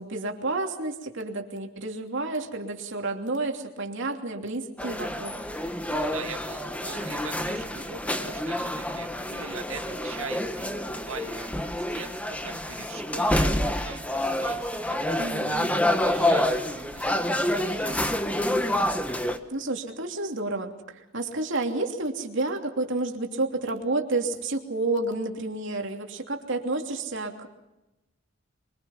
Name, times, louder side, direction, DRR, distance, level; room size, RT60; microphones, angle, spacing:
voice 1, 0.0-5.3 15.2-15.7 19.5-27.5, right 2 dB, 65° right, 2 dB, 3.0 m, -30 dB
sound 1, 4.8-19.4, left 1 dB, 5° left, 1.3 m, -28 dB
voice 2, 5.9-11.5 11.7-15.2 15.5-18.2, right 5 dB, 90° right, 5 dB, 1.8 m, -42 dB
24.5 x 24.0 x 5.8 m, 0.98 s
head